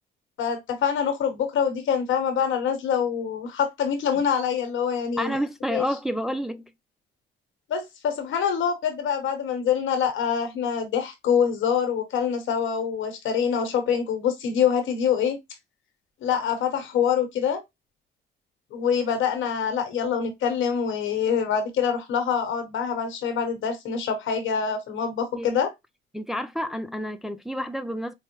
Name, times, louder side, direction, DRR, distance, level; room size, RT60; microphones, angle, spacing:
voice 1, 0.4-5.4 5.7-5.8 7.7-15.4 16.2-17.6 18.7-25.7, left 7 dB, 80° left, 1.2 m, -25 dB
voice 2, 5.2-6.6 25.4-25.5 26.1-28.1, equal, ahead, 0.4 m, -29 dB
4.6 x 2.1 x 3.0 m
cardioid pair, 90°, 20 cm